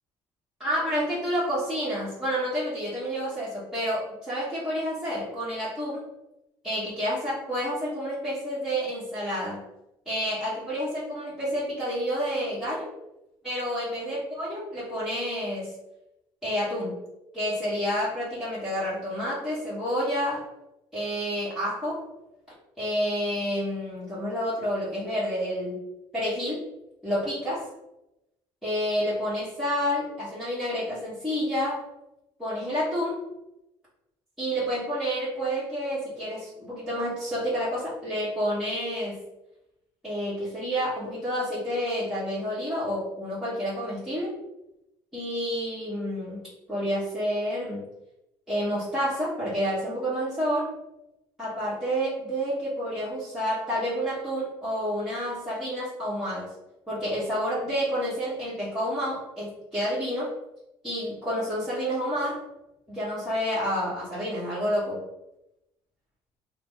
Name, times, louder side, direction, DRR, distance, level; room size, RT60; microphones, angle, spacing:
voice 1, 0.6-6.0 6.6-9.6 10.0-12.9 13.4-15.7 16.4-17.0 17.3-20.5 20.9-22.1 22.8-25.9 26.1-26.7 27.0-27.7 28.6-31.8 32.4-33.2 34.4-39.2 40.0-44.3 45.1-47.9 48.5-50.7 51.4-56.5 56.9-60.3 60.8-62.4 62.9-65.0, equal, 5° right, -12 dB, 1.3 m, -29 dB
2.9 x 2.1 x 3.8 m, 0.90 s
supercardioid pair, 80°, 12 cm